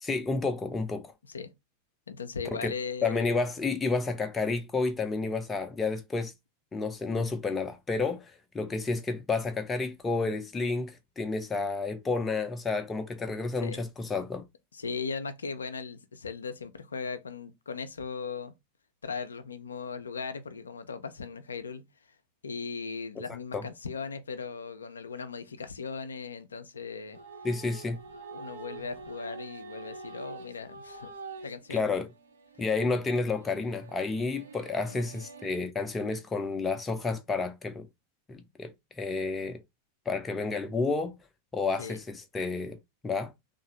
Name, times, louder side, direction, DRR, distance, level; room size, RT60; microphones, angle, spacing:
voice 1, 0.0-1.1 2.5-2.7 3.0-6.3 6.7-14.4 23.5-23.6 27.4-28.0 31.7-32.1 32.6-37.9 38.3-38.7 39.0-39.6 40.1-41.2 41.5-42.8 43.0-43.3, left 3 dB, 15° left, 0.5 m, -30 dB
voice 2, 2.1-3.3 13.6-13.8 14.7-18.5 19.0-21.8 22.4-27.2 28.3-31.1 31.4-31.9 34.9-35.0 41.8-42.0, left 5 dB, 70° left, 0.4 m, -38 dB
sound 1, 27.1-35.5, right 4 dB, 65° right, 0.5 m, -46 dB
2.7 x 2.4 x 2.9 m
figure-of-eight pair, 90°, 0 cm